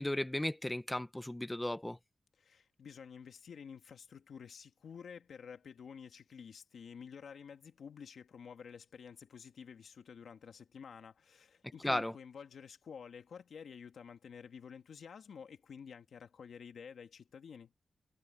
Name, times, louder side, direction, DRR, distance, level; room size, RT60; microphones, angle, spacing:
voice 1, 0.0-2.0 11.8-12.1, left 1 dB, 10° left, 0.6 m, -35 dB
voice 2, 2.4-17.7, left 6 dB, 80° left, 2.1 m, -51 dB
wide cardioid pair, 150°, 0 cm